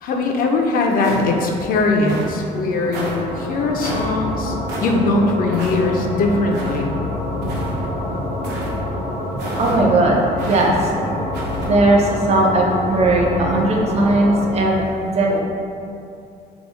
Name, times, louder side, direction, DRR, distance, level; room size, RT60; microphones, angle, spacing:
voice 1, 0.0-4.6 4.8-6.9, left 3 dB, 60° left, 2 dB, 0.5 m, -20 dB
sound 1, 1.0-1.5 2.0-2.4 2.9-3.2 3.8-4.1 4.7-4.9 5.5-5.8 6.5-6.8 7.4-7.9 8.4-8.7 9.4-9.8 10.4-10.7 11.3-11.7, right 2 dB, 80° right, 0.7 m, -30 dB
sound 2, 2.7-14.5, left 1 dB, 80° left, 1.0 m, -27 dB
voice 2, 9.6-10.9 11.7-15.4, right 2 dB, 40° right, -1 dB, 0.6 m, -18 dB
2.9 x 2.0 x 4.1 m, 2.5 s
cardioid pair, 110°, 17 cm